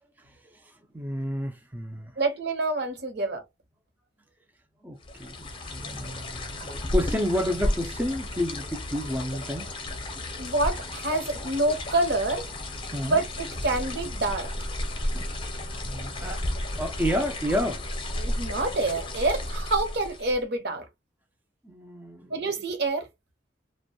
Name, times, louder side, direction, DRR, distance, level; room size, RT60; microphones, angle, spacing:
voice 1, 0.9-2.1 4.8-9.7 12.9-13.2 15.1-15.3 15.8-16.4 16.8-17.8 21.6-22.5, equal, 10° right, 0.4 m, -30 dB
voice 2, 2.2-3.4 10.4-12.5 13.0-14.5 18.2-20.9 22.3-23.1, right 2 dB, 65° right, 0.8 m, -27 dB
sound 1, 5.0-20.4, left 1 dB, 30° left, 0.6 m, -33 dB
2.5 x 2.1 x 2.7 m
head